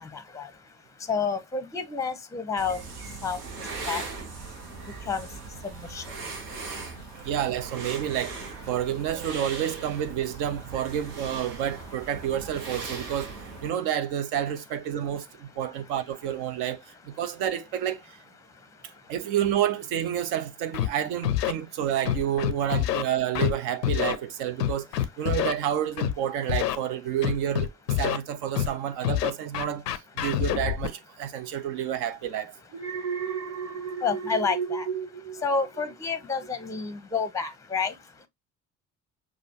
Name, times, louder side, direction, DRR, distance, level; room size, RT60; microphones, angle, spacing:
voice 1, 0.0-0.5 1.1-2.8 3.2-3.4 3.9-4.0 5.1-5.3 5.6-6.0 34.0-34.9 35.4-37.9, left 5 dB, 5° left, 0.7 m, -29 dB
sound 1, 2.6-13.7, right 4 dB, 70° right, 1.1 m, -39 dB
voice 2, 7.2-8.3 8.7-13.3 13.6-18.0 19.1-27.7 28.0-29.8 30.2-32.5, right 10 dB, 55° right, 0.8 m, -29 dB
Scratching (performance technique), 20.7-20.9 21.2-21.5 22.1-23.0 23.4-23.5 23.8-24.2 24.6-25.5 26.0-26.1 26.5-26.8 27.2-28.2 28.6-28.7 29.0-30.9, left 12 dB, 85° left, 0.5 m, -26 dB
Alarm, 32.7-36.0 36.4-36.8, right 6 dB, 25° right, 1.5 m, -33 dB
6.2 x 2.4 x 2.8 m
figure-of-eight pair, 50°, 47 cm